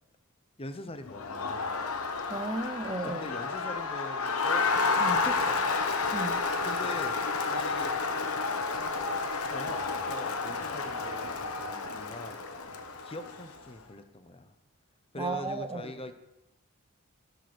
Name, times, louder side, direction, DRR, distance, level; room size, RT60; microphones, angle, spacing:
voice 1, 0.6-1.8 3.1-4.7 5.1-5.6 6.6-7.2 7.5-7.9 9.5-12.4 13.0-14.5 15.1-16.1, left 1 dB, 25° left, 9 dB, 0.8 m, -42 dB
Crowd, 1.1-13.6, left 4 dB, 85° left, 1.1 m, -31 dB
voice 2, 2.3-3.2 5.0-5.2 6.1-6.4 15.2-15.9, right 2 dB, 20° right, 9 dB, 0.7 m, -34 dB
13.0 x 6.5 x 6.1 m, 0.98 s
head